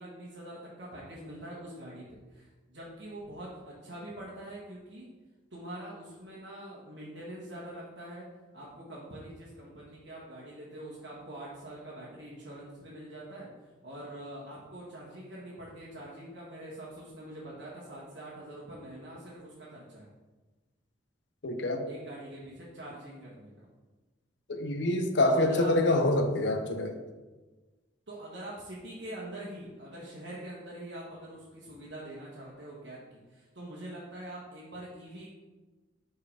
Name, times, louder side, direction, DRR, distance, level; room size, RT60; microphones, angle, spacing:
voice 1, 0.0-5.1 5.5-8.3 8.5-13.5 13.8-20.1 21.9-23.6 25.3-26.0 28.1-35.3, right 1 dB, 70° right, -6 dB, 1.4 m, -44 dB
voice 2, 21.4-21.9 24.5-26.9, left 1 dB, 65° left, 6 dB, 0.7 m, -26 dB
5.1 x 4.6 x 4.8 m, 1.2 s
head